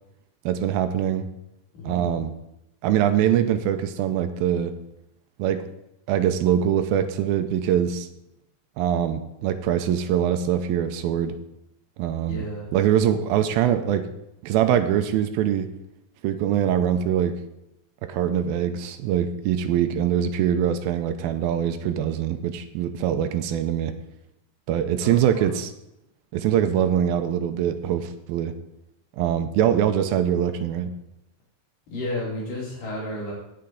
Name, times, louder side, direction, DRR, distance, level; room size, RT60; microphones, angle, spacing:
voice 1, 0.5-1.3 1.8-2.3 2.8-4.7 5.4-5.7 6.1-8.1 8.8-11.4 12.0-12.5 12.7-14.1 14.4-15.7 16.2-17.4 18.0-23.9 24.7-25.7 26.3-28.5 29.2-30.9, right 9 dB, 85° right, 9 dB, 2.5 m, -23 dB
voice 2, 1.7-2.1 12.3-12.8 25.0-25.5 31.9-33.3, left 1 dB, 65° left, -5 dB, 4.2 m, -32 dB
16.5 x 5.7 x 3.9 m, 0.85 s
omnidirectional pair, 4.2 m